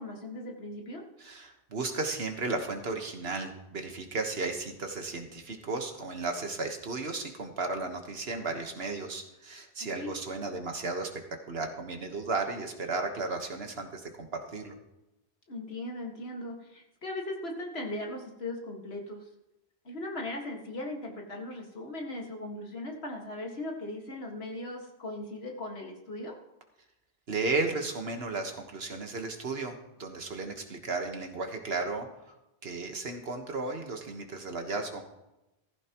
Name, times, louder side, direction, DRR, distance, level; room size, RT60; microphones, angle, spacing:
voice 1, 0.0-1.0 10.0-10.1 15.5-19.2 19.9-26.3, left 1 dB, 70° left, 1 dB, 2.1 m, -38 dB
voice 2, 1.2-11.1 11.5-14.7 27.3-32.3 32.6-35.1, right 3 dB, 70° right, 4 dB, 1.6 m, -34 dB
15.0 x 15.0 x 3.0 m, 0.94 s
omnidirectional pair, 1.1 m